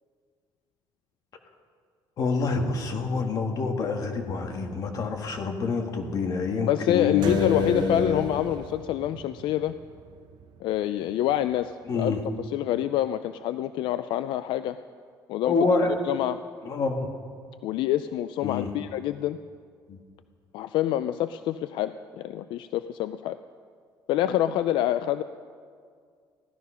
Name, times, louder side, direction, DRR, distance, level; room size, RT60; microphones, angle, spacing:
voice 1, 2.2-8.2 11.9-12.2 15.4-16.0 16.6-17.1 18.4-18.7 19.9-20.0, left 4 dB, 45° left, 4 dB, 1.6 m, -26 dB
voice 2, 6.7-9.8 10.6-12.2 12.5-14.8 15.3-15.5 16.1-16.4 17.6-19.4 20.5-23.4 24.1-25.2, left 12 dB, 80° left, 12 dB, 0.4 m, -26 dB
sound 1, 7.2-12.0, right 8 dB, 60° right, 0.7 m, -40 dB
16.0 x 12.5 x 5.6 m, 2.1 s
cardioid pair, 145°, 8 cm